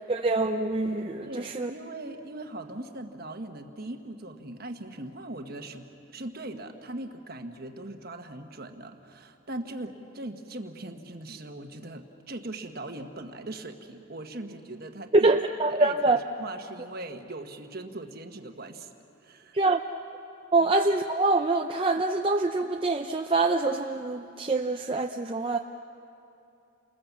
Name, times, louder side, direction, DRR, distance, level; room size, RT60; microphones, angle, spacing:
voice 1, 0.1-1.7 15.1-16.2 19.5-19.8 20.5-25.6, right 2 dB, 25° right, 3 dB, 0.5 m, -25 dB
voice 2, 1.3-15.3 15.7-18.9 19.2-19.6 20.6-20.7, right 2 dB, 45° right, 6 dB, 1.3 m, -40 dB
29.5 x 20.5 x 7.3 m, 2.7 s
head